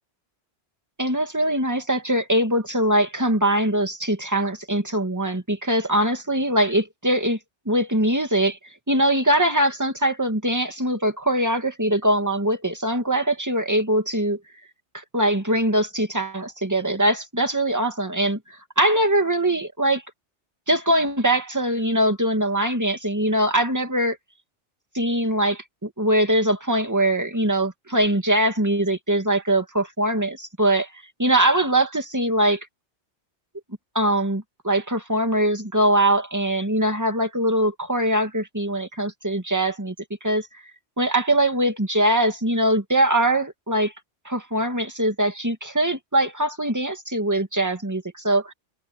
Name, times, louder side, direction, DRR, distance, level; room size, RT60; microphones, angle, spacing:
voice 1, 1.0-7.4 7.7-8.6 8.9-14.4 14.9-20.0 20.7-24.2 24.9-30.9 31.2-32.7 33.9-39.9 40.2-40.5 41.0-43.9 44.2-48.5, right 1 dB, 15° right, 2.3 m, -22 dB
omnidirectional pair, 1.2 m